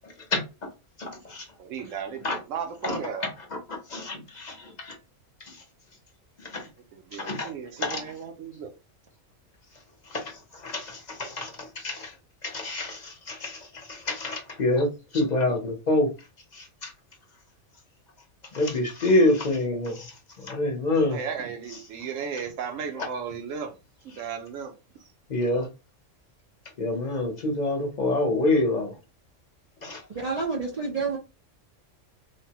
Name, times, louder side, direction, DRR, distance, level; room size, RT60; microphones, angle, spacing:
voice 1, 1.0-1.4 2.2-2.4 2.8-3.0 3.9-5.0 6.4-6.7 7.2-7.5 7.8-8.0 10.1-10.3 10.6-12.1 12.4-14.9 15.1-16.1 16.5-16.9 18.5-20.1 20.4-21.2 25.3-25.7 26.8-28.9 29.8-30.0, left 2 dB, 40° left, 0.8 m, -26 dB
voice 2, 1.6-3.2 6.9-8.7 21.1-23.8 24.0-24.7, right 6 dB, 80° right, 1.0 m, -35 dB
voice 3, 30.2-31.2, right 4 dB, 65° right, 0.3 m, -28 dB
3.3 x 2.1 x 2.8 m
omnidirectional pair, 1.3 m